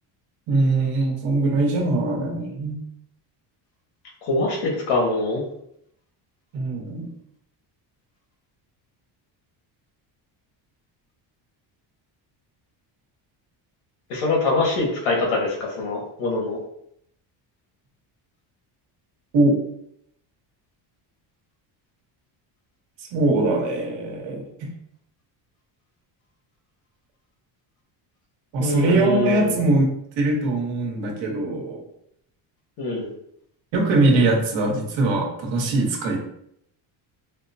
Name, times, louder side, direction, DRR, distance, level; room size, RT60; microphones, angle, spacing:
voice 1, 0.5-2.8 6.5-7.1 19.3-19.6 23.1-24.7 28.5-29.9 30.2-31.8 33.7-36.2, right 2 dB, 70° right, 0 dB, 1.2 m, -22 dB
voice 2, 4.2-5.4 14.1-16.6 28.6-29.5 32.8-33.1, left 2 dB, 90° left, -1 dB, 1.5 m, -24 dB
5.0 x 2.1 x 2.7 m, 0.74 s
cardioid pair, 150°, 48 cm